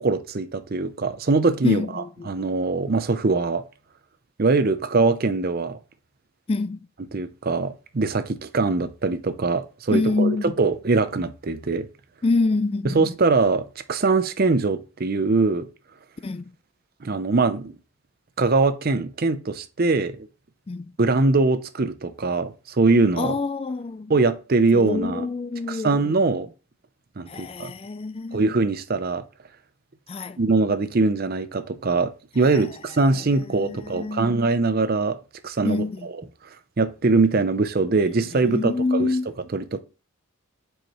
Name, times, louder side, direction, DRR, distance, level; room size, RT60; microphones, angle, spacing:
voice 1, 0.0-3.6 4.4-5.8 7.1-11.9 12.8-15.7 17.0-17.7 18.4-20.3 21.0-23.4 24.1-25.3 25.7-26.5 27.2-27.7 28.3-29.2 30.4-35.2 35.4-36.2 36.8-39.2 39.5-39.8, right 3 dB, 45° right, 0.5 m, -22 dB
voice 2, 1.6-2.3 6.5-6.8 9.9-10.5 12.2-13.1 16.2-16.5 20.7-20.9 23.2-24.1 24.7-26.0 27.3-28.5 30.1-30.4 33.5-34.3 35.6-36.1 38.5-39.3, left 3 dB, 25° left, 0.3 m, -26 dB
9.0 x 4.8 x 3.0 m
head